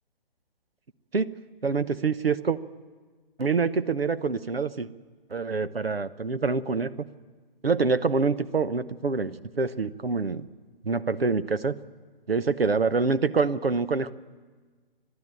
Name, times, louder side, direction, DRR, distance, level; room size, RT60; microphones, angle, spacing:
voice 1, 1.6-2.6 3.4-4.9 5.3-6.9 7.6-10.5 10.8-11.7 12.3-14.1, right 4 dB, 85° right, 14 dB, 0.9 m, -26 dB
29.5 x 12.0 x 9.1 m, 1.4 s
figure-of-eight pair, 135°, 29 cm